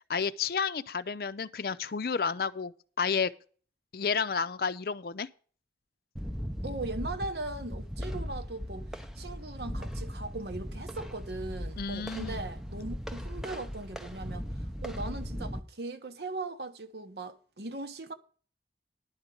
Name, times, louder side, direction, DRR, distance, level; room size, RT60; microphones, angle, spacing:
voice 1, 0.1-3.3 3.9-5.3 11.8-12.4, left 5 dB, 55° left, 0.5 m, -31 dB
sound 1, 6.2-15.6, equal, 5° right, 0.7 m, -38 dB
voice 2, 6.6-18.1, right 2 dB, 70° right, 1.1 m, -39 dB
10.5 x 5.2 x 8.4 m
head